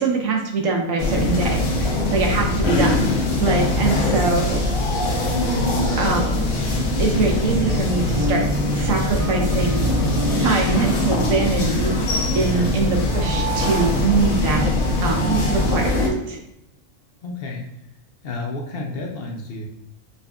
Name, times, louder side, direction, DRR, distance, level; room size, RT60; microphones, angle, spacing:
voice 1, 0.0-3.1 3.4-4.6 6.0-6.5 7.0-8.5 8.7-9.8 10.3-11.9 12.3-14.7 15.0-16.4, right 4 dB, 85° right, 1 dB, 1.2 m, -23 dB
sound 1, 1.0-16.1, left 2 dB, 75° left, 1.1 m, -22 dB
sound 2, 8.1-15.4, left 1 dB, 20° right, 0.4 m, -31 dB
voice 2, 12.4-12.8 15.4-15.8 17.2-17.7 18.2-19.7, left 2 dB, 60° left, 1 dB, 0.7 m, -31 dB
5.3 x 2.5 x 2.3 m, 0.80 s
omnidirectional pair, 1.3 m